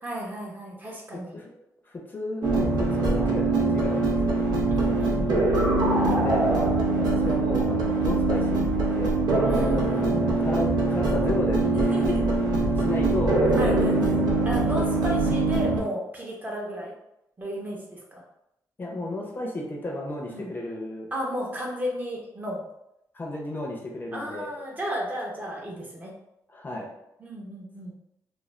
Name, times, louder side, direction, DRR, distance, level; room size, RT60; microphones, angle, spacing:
voice 1, 0.0-1.4 4.7-5.6 7.2-7.5 9.4-10.4 11.9-12.2 13.6-14.2 14.4-16.9 17.4-18.2 20.3-20.5 21.1-22.6 24.1-26.1 27.2-27.9, equal, 25° right, -2 dB, 0.7 m, -33 dB
voice 2, 1.3-4.4 5.9-6.7 7.0-9.1 9.7-12.4 12.7-14.0 18.8-21.1 23.1-24.5 26.5-26.9, left 2 dB, 30° left, -1 dB, 0.6 m, -33 dB
sound 1, 2.4-15.8, right 2 dB, 80° right, 0.6 m, -23 dB
2.4 x 2.2 x 3.1 m, 0.83 s
cardioid pair, 110°, 7 cm